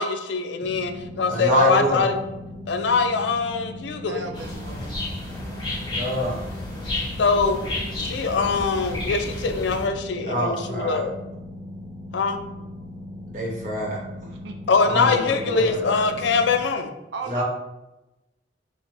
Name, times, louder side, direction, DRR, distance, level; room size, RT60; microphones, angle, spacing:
voice 1, 0.0-2.2 2.7-4.2 7.2-7.6 8.0-11.1 12.1-12.4 14.7-16.9, left 4 dB, 75° left, 7 dB, 0.4 m, -23 dB
sound 1, 0.6-16.6, left 1 dB, 5° left, 0.5 m, -39 dB
voice 2, 1.3-2.0 5.9-6.4 10.2-11.0 13.3-14.0 14.8-15.9 17.3-17.4, right 1 dB, 45° right, -3 dB, 1.2 m, -26 dB
voice 3, 4.0-4.9 6.9-7.0 14.2-14.5 17.1-17.4, right 3 dB, 70° right, 4 dB, 0.5 m, -36 dB
sound 2, 4.3-9.9, left 1 dB, 25° left, 1.1 m, -32 dB
5.4 x 2.1 x 3.3 m, 0.99 s
head